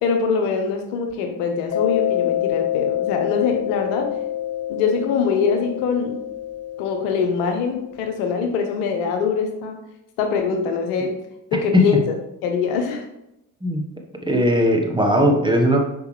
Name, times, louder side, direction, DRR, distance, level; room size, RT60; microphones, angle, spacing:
voice 1, 0.0-4.1 4.7-6.1 6.8-9.8 10.2-11.1 11.5-12.1 12.4-13.0, left 5 dB, 70° left, 5 dB, 1.1 m, -23 dB
Mallet percussion, 1.7-8.1, left 12 dB, 30° left, 0.4 m, -26 dB
voice 2, 14.3-15.8, equal, 10° right, 1 dB, 1.3 m, -18 dB
6.0 x 5.1 x 3.2 m, 0.86 s
hypercardioid pair, 55°, 50 cm